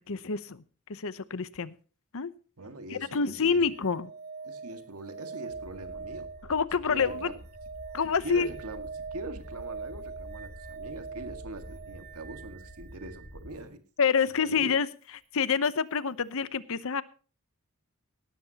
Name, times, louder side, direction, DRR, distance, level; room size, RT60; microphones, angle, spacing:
voice 1, 0.1-0.6 0.9-1.7 2.1-2.3 2.9-4.1 6.5-7.3 7.9-8.5 14.0-14.9 15.3-17.0, left 6 dB, 65° left, 16 dB, 0.8 m, -27 dB
voice 2, 2.6-3.7 4.4-6.3 6.9-7.4 8.2-13.8 14.4-14.7, right 2 dB, 75° right, 8 dB, 1.9 m, -42 dB
sound 1, 3.5-13.3 15.6-15.7, right 5 dB, 45° right, 1.0 m, -43 dB
sound 2, 5.5-13.6, equal, 45° left, 2.1 m, -48 dB
17.5 x 13.0 x 2.9 m, 0.38 s
head